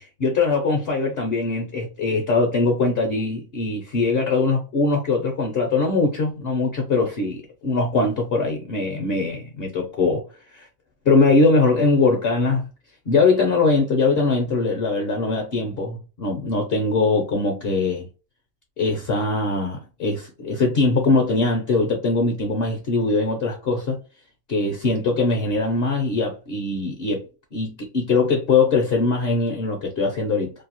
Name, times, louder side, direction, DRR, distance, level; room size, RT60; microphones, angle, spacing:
voice 1, 0.0-10.2 10.5-10.7 11.0-12.6 13.1-18.1 18.8-24.0 24.5-27.2 27.5-30.5, left 3 dB, 60° left, 0.7 m, -21 dB
2.6 x 2.3 x 2.8 m
omnidirectional pair, 1.4 m